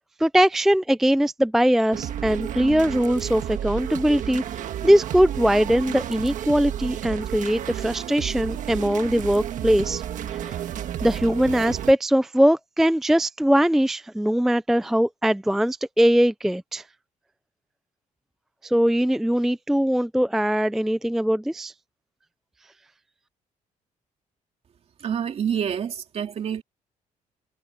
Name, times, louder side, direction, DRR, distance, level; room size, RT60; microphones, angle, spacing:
voice 1, 0.2-10.0 10.3-10.6 11.0-16.8 18.6-21.7, equal, ahead, 0.3 m, -21 dB
sound 1, 1.9-11.9, right 10 dB, 60° right, 1.5 m, -31 dB
voice 2, 25.0-26.6, right 8 dB, 45° right, 2.6 m, -27 dB
cardioid pair, 160°, 15 cm